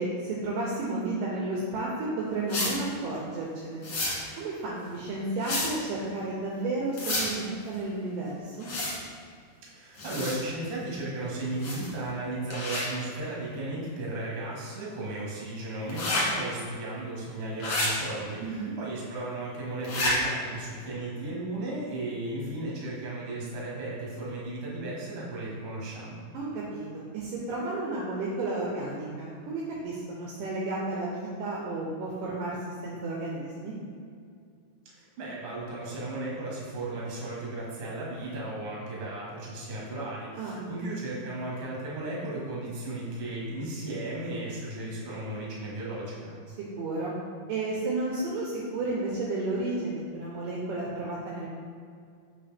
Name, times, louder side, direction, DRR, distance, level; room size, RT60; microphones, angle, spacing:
voice 1, 0.0-3.8 4.4-8.7 18.4-18.7 26.3-32.6 32.8-33.7 40.4-40.7 46.8-47.1 47.5-51.5, right 2 dB, 80° right, -4 dB, 2.1 m, -32 dB
sound 1, 2.5-2.7 3.8-4.1 5.4-5.7 6.9-7.3 8.6-8.9 10.0-10.4 11.6-11.9 12.5-12.8 15.9-16.2 17.6-17.9 19.8-20.1, left 2 dB, 55° left, 1.5 m, -29 dB
voice 2, 9.6-26.2 34.9-46.3, right 2 dB, 50° right, -5 dB, 1.9 m, -35 dB
5.7 x 5.5 x 3.4 m, 2.3 s
omnidirectional pair, 4.4 m